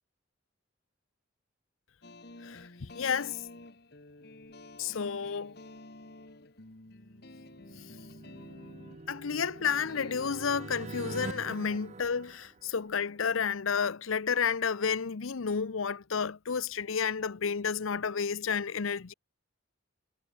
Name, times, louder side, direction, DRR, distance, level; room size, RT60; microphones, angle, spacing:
sound 1, 2.0-10.3, left 2 dB, 50° left, 1.8 m, -50 dB
voice 1, 2.4-3.4 4.8-5.5 9.1-19.1, left 6 dB, 80° left, 0.7 m, -31 dB
sound 2, 7.2-13.0, right 3 dB, 35° right, 0.5 m, -45 dB
head